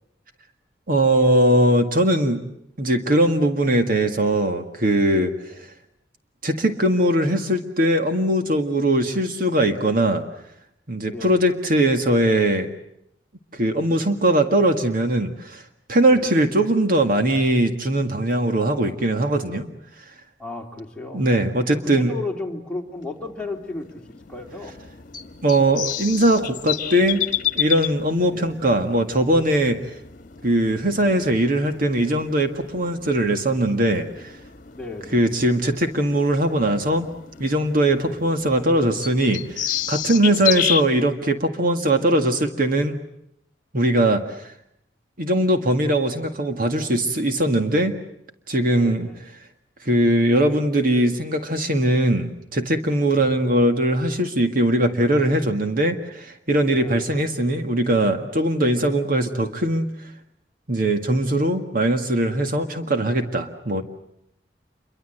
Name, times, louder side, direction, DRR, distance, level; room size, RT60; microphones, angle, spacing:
voice 1, 0.9-2.4 2.8-5.3 6.4-10.2 10.9-12.7 13.5-15.6 15.9-19.7 21.1-22.1 25.4-27.2 27.6-29.8 30.4-34.3 35.1-37.1 37.4-43.0 43.7-44.2 45.2-47.9 48.5-49.1 49.9-59.9 60.7-63.8, right 1 dB, 55° right, 6 dB, 1.9 m, -20 dB
voice 2, 20.4-21.3 21.7-24.7 28.3-28.5 34.7-35.2 38.0-38.2 40.3-40.5 48.7-49.2 53.1-53.4 56.8-57.3 58.7-58.9, left 3 dB, 5° left, -1 dB, 3.4 m, -34 dB
sound 1, 23.0-40.8, left 10 dB, 50° left, 1.6 m, -32 dB
28.0 x 23.5 x 7.9 m, 0.76 s
head